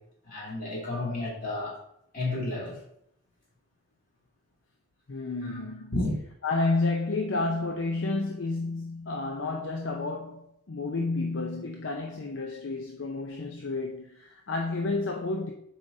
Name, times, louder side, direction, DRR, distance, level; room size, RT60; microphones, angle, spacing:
voice 1, 0.2-1.7 2.1-2.8 5.5-5.6 5.9-6.1, left 2 dB, 45° left, 2.4 m, -31 dB
voice 2, 5.1-5.9 6.4-15.5, left 3 dB, 65° left, 0.6 m, -30 dB
7.2 x 4.9 x 2.7 m
head